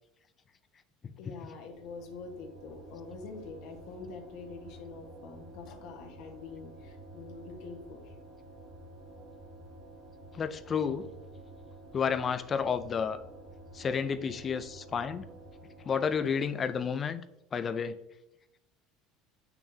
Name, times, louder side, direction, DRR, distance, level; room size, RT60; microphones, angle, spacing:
voice 1, 1.2-8.1, left 4 dB, 60° left, 2 dB, 1.3 m, -45 dB
sound 1, 1.2-17.1, right 1 dB, 35° right, 2.0 m, -51 dB
voice 2, 10.3-11.0 11.9-13.2 13.7-15.3 15.8-17.2 17.5-18.0, left 6 dB, 25° left, 12 dB, 0.4 m, -31 dB
8.7 x 5.9 x 2.7 m, 0.88 s
cardioid pair, 160°, 0 cm